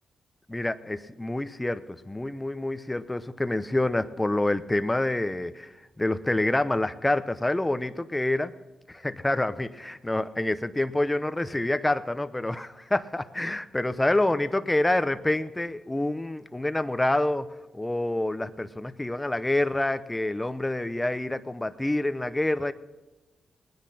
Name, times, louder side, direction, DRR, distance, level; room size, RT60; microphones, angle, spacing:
voice 1, 0.5-8.5 8.9-17.5 17.7-22.7, left 1 dB, 15° left, 12 dB, 0.9 m, -27 dB
20.5 x 10.0 x 4.3 m, 1.1 s
cardioid pair, 75°, 0 cm